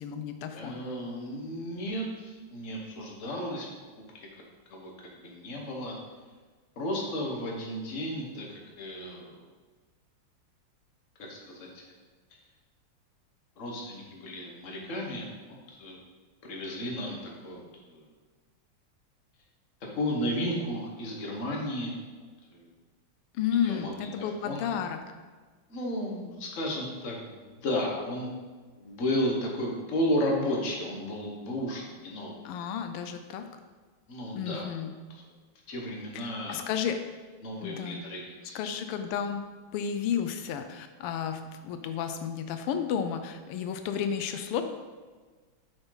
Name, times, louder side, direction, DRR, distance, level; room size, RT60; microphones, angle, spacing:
voice 1, 0.0-0.7 23.3-25.1 32.4-33.5 34.3-34.9 36.1-37.0 37.6-38.0 38.5-39.4 39.7-44.6, left 8 dB, 90° left, 8 dB, 1.6 m, -32 dB
voice 2, 0.5-3.7 4.1-4.3 4.7-5.9 6.8-9.4 11.2-12.0 13.6-15.3 15.7-16.0 16.4-18.1 19.9-21.9 22.5-22.7 23.6-24.7 25.7-28.3 28.7-32.4 34.1-34.7 35.7-36.6 37.4-38.7, equal, 40° left, -1 dB, 1.5 m, -33 dB
7.5 x 5.9 x 4.0 m, 1.4 s
omnidirectional pair, 2.4 m